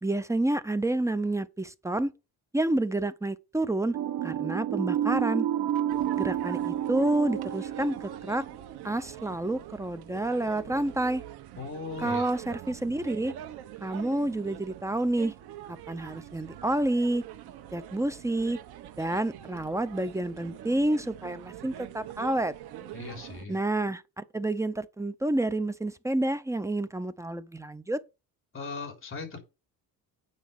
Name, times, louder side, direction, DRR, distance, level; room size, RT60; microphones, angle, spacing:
voice 1, 0.0-2.1 2.5-4.0 4.2-5.5 6.2-8.4 8.8-11.2 12.0-13.3 13.8-15.3 15.7-17.2 17.7-18.6 19.0-22.5 23.5-28.0, right 1 dB, 10° right, 0.5 m, -29 dB
sound 1, 3.9-9.2, right 11 dB, 60° right, 1.0 m, -30 dB
sound 2, 5.9-23.5, right 12 dB, 80° right, 1.3 m, -44 dB
voice 2, 11.6-12.3 22.9-23.6 28.5-29.4, left 4 dB, 30° left, 3.7 m, -38 dB
9.3 x 5.1 x 6.7 m
cardioid pair, 140°, 38 cm